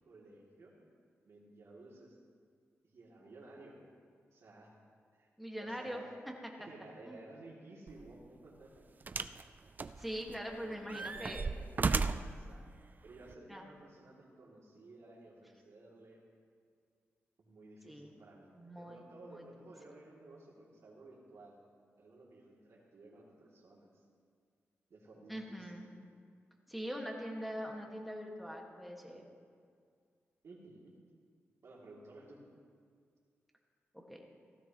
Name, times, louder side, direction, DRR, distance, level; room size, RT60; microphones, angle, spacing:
voice 1, 0.0-0.8 1.2-2.2 2.8-3.8 4.3-4.7 5.1-5.3 5.6-6.2 6.6-8.9 9.2-9.5 10.5-12.7 13.0-16.2 17.4-21.6 22.0-24.0 24.9-25.8 27.7-27.8 30.4-31.0 31.6-32.4, right 2 dB, 70° right, -4 dB, 2.8 m, -55 dB
voice 2, 5.4-6.3 7.1-7.2 10.0-11.5 13.5-13.7 17.8-18.1 18.5-19.5 25.3-25.9 26.7-29.2 33.9-34.3, equal, ahead, 0 dB, 1.7 m, -43 dB
sound 1, 7.9-8.1 9.1-9.4 9.8-10.5 10.9-12.4 13.3-13.4, right 4 dB, 40° right, 0.4 m, -34 dB
15.5 x 13.5 x 3.0 m, 2.2 s
cardioid pair, 90°, 5 cm